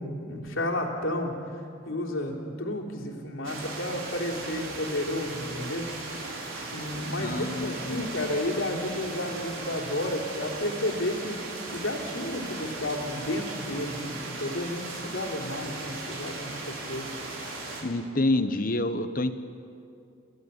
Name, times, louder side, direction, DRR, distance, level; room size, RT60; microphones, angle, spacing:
voice 1, 0.0-1.3 1.9-5.9 6.7-11.4 11.7-17.1, left 1 dB, 90° left, 0 dB, 3.4 m, -32 dB
sound 1, 3.4-17.8, right 2 dB, 85° right, 4.4 m, -37 dB
voice 2, 7.2-8.1 17.8-19.3, left 2 dB, 45° left, 10 dB, 1.1 m, -28 dB
27.5 x 16.0 x 8.3 m, 2.5 s
head